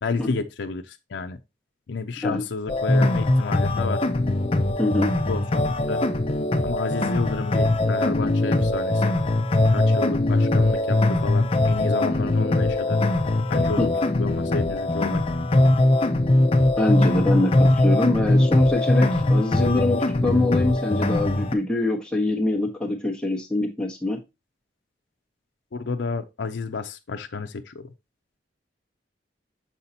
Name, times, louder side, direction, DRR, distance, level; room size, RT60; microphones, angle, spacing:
voice 1, 0.0-1.4 1.9-4.0 5.3-5.6 5.9-6.1 6.6-9.1 9.7-13.0 13.5-13.9 14.2-15.2 25.7-27.9, left 4 dB, 80° left, 0.5 m, -30 dB
sound 1, 2.7-21.5, left 2 dB, 30° left, 0.6 m, -21 dB
voice 2, 4.8-5.1 13.8-13.9 16.8-24.2, left 2 dB, 5° left, 1.3 m, -24 dB
6.6 x 5.6 x 2.8 m
head